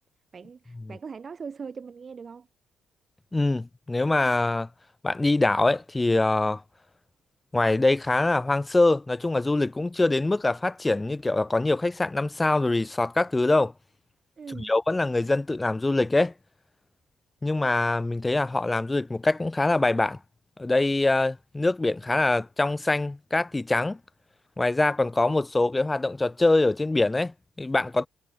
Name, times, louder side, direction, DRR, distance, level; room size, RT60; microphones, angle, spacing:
voice 1, 0.3-2.5 14.4-14.7, right 5 dB, 40° right, 0.9 m, -40 dB
voice 2, 3.3-4.7 5.0-6.6 7.5-13.7 14.6-16.3 17.4-20.2 20.6-24.0 24.6-28.1, left 2 dB, 15° left, 0.5 m, -24 dB
cardioid pair, 90°, 0 cm